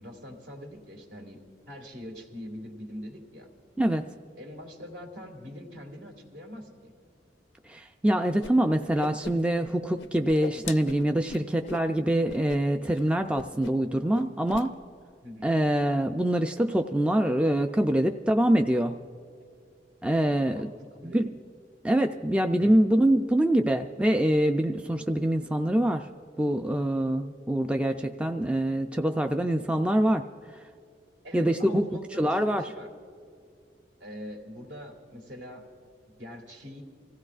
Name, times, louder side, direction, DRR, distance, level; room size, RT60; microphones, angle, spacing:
voice 1, 0.0-1.4 1.7-3.5 4.4-6.9 8.7-9.1 10.5-10.6 15.2-15.5 20.5-21.2 22.6-22.8 31.2-32.9 34.0-35.6 36.2-36.8, equal, 70° right, 2 dB, 2.1 m, -43 dB
voice 2, 7.7-14.7 15.4-19.0 20.0-20.7 21.0-21.3 21.8-26.1 26.4-30.2 31.3-31.8 32.2-32.6, right 1 dB, 5° right, 5 dB, 0.3 m, -25 dB
Whoosh swoosh swish, 8.4-8.5 8.8-9.7 10.0-11.9 12.3-12.6 12.8-13.0 13.3-13.9 14.1-14.7, left 4 dB, 80° left, 0.5 m, -40 dB
26.0 x 15.5 x 2.4 m, 2.2 s
head